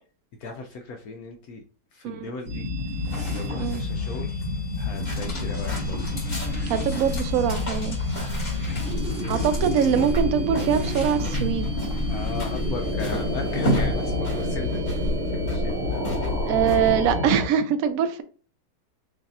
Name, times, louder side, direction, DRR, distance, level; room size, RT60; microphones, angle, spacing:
voice 1, 0.4-1.6 1.9-2.7 3.1-4.5 4.8-6.0 8.7-9.4 9.9-10.8 12.1-16.2, left 4 dB, 70° left, 0.9 m, -37 dB
sound 1, 2.4-14.6, equal, 40° left, 2.8 m, -36 dB
sound 2, 2.5-17.5, left 2 dB, 45° right, 1.0 m, -29 dB
sound 3, 4.9-17.1, left 1 dB, 25° left, 1.7 m, -33 dB
voice 2, 6.7-8.0 9.3-11.7 16.5-18.2, right 8 dB, 70° right, 0.8 m, -23 dB
6.5 x 2.7 x 2.6 m
omnidirectional pair, 2.0 m